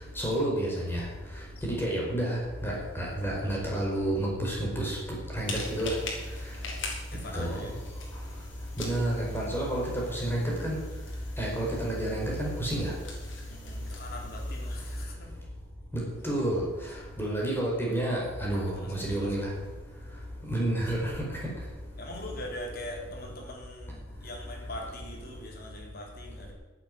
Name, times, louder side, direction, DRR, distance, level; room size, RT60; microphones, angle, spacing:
voice 1, 0.2-1.0 1.6-5.0 5.3-5.9 7.3-7.7 8.8-10.8 11.4-12.9 15.9-16.6 17.2-19.5 20.5-21.1, right 1 dB, 10° left, -3 dB, 4.9 m, -30 dB
voice 2, 1.6-1.9 6.5-7.7 8.4-8.6 13.5-15.4 16.9-17.0 17.9-18.1 18.6-19.5 21.9-26.5, left 1 dB, 55° left, -1 dB, 4.1 m, -43 dB
sound 1, 5.4-15.1, left 1 dB, 80° left, 3.9 m, -39 dB
12.5 x 8.6 x 9.9 m, 1.2 s
head